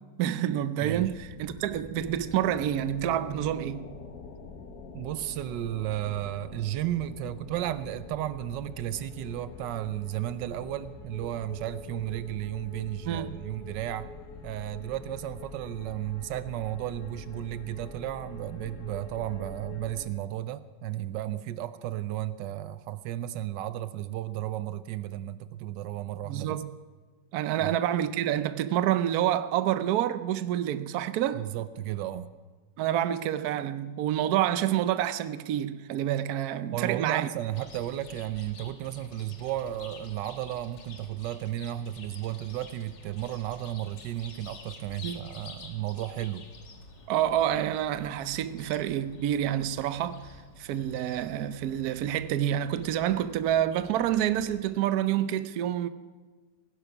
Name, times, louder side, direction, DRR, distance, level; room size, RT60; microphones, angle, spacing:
voice 1, 0.2-3.8 13.0-13.4 26.2-26.7 27.3-31.4 32.8-37.3 45.0-45.3 47.1-50.2 50.6-55.9, right 11 dB, 65° right, 1.1 m, -28 dB
sound 1, 0.8-20.1, left 4 dB, 65° left, 1.7 m, -45 dB
voice 2, 4.9-14.1 14.4-26.6 27.6-27.8 31.3-32.3 36.7-46.5, right 13 dB, 85° right, 1.3 m, -34 dB
Chirp tweet, 37.5-54.6, left 3 dB, 85° left, 2.1 m, -49 dB
18.0 x 10.5 x 5.9 m
omnidirectional pair, 1.9 m